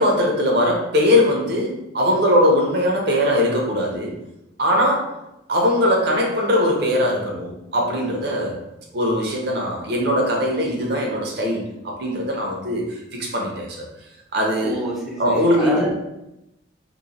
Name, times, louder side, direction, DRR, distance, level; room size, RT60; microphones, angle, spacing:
voice 1, 0.0-4.1 4.6-5.0 5.5-8.6 8.9-13.8 14.3-14.8 15.2-15.9, left 1 dB, 55° right, -1 dB, 0.7 m, -20 dB
voice 2, 14.6-15.9, right 1 dB, ahead, -6 dB, 0.4 m, -28 dB
3.0 x 2.2 x 4.0 m, 0.89 s
head